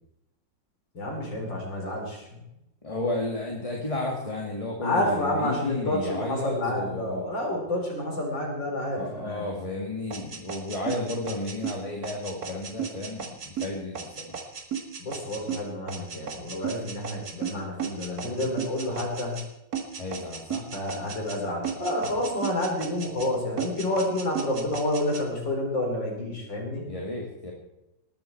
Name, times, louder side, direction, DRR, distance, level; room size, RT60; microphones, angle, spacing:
voice 1, 0.9-2.4 4.8-9.5 15.0-19.4 20.7-26.8, left 1 dB, 80° left, 0 dB, 5.3 m, -29 dB
voice 2, 2.8-7.2 9.0-14.3 20.0-20.7 26.9-27.5, left 2 dB, 20° left, -1 dB, 2.0 m, -32 dB
sound 1, 10.1-19.5 19.7-21.4 21.6-23.3 23.6-25.2, right 7 dB, 55° right, 2.1 m, -35 dB
20.0 x 12.5 x 4.5 m, 0.90 s
omnidirectional pair, 2.0 m